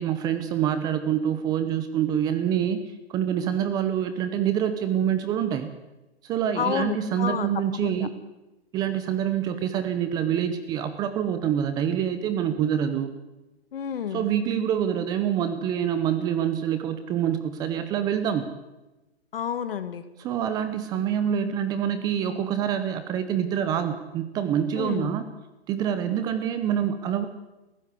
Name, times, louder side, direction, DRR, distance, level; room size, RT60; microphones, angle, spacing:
voice 1, 0.0-2.8 3.1-5.7 6.2-8.2 8.7-13.1 14.1-18.5 20.2-25.3 25.7-27.3, right 9 dB, 10° right, 10 dB, 0.7 m, -26 dB
voice 2, 6.6-7.5 7.8-8.1 13.7-14.3 19.3-20.0 24.8-25.1, left 8 dB, 60° left, 12 dB, 1.9 m, -30 dB
22.0 x 15.5 x 8.2 m, 1.0 s
hypercardioid pair, 155°, 32 cm